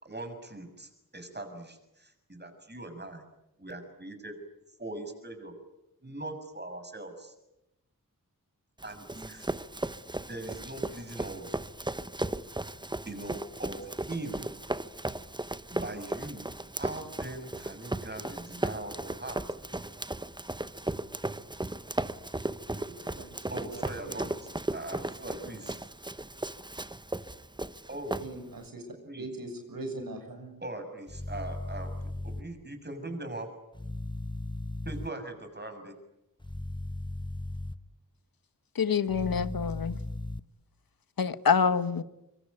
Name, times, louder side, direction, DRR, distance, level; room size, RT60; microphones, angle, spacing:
voice 1, 0.0-3.2 3.6-4.4 4.8-5.5 6.0-7.3 8.8-9.5 10.2-11.5 13.0-14.5 15.7-16.5 16.8-19.4 23.5-25.8 27.9-28.2 29.0-29.3 30.6-31.9 32.2-33.5 34.8-35.9, right 2 dB, 30° right, 6.8 m, -41 dB
Run, 8.8-28.7, right 1 dB, 15° right, 1.0 m, -36 dB
voice 2, 22.7-23.7 24.0-24.3 28.2-28.8 29.2-30.5, right 2 dB, 80° right, 7.0 m, -41 dB
sound 1, 31.1-32.4 33.7-35.1 36.4-37.7 39.1-40.4, left 1 dB, 15° left, 1.2 m, -37 dB
voice 3, 38.8-40.0 41.2-42.0, left 6 dB, 85° left, 1.3 m, -26 dB
25.0 x 24.5 x 9.5 m
wide cardioid pair, 70°, 34 cm